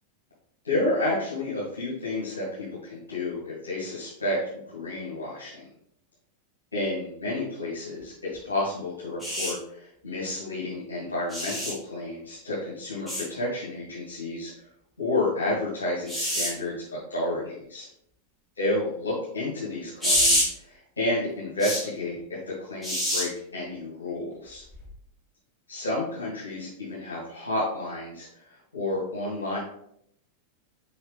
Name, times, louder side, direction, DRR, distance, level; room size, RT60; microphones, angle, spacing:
voice 1, 0.6-4.4 4.7-5.7 6.7-8.1 8.4-14.5 15.0-16.8 17.1-17.9 18.6-22.2 22.5-24.6 25.7-29.6, left 2 dB, 75° left, -8 dB, 2.3 m, -30 dB
sound 1, 9.2-9.5 11.3-11.7 13.1-13.2 16.1-16.5 20.0-20.4 21.6-21.8 22.8-23.2 24.7-24.9, equal, 5° left, 2.5 m, -25 dB
5.7 x 5.5 x 3.5 m, 0.72 s
figure-of-eight pair, 90°, 0 cm